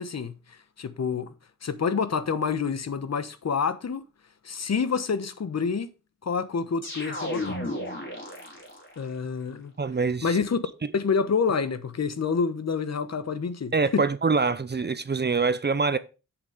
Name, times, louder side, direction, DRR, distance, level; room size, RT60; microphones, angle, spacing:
voice 1, 0.0-1.3 1.6-4.0 4.4-5.9 6.2-7.6 9.0-9.7 10.2-10.6 10.9-14.0, left 5 dB, 50° left, 1.1 m, -28 dB
sound 1, 6.8-9.1, left 1 dB, 35° left, 3.9 m, -34 dB
voice 2, 9.8-10.4 13.7-16.0, right 4 dB, 30° right, 0.7 m, -25 dB
8.1 x 7.1 x 5.0 m
cardioid pair, 85°, 33 cm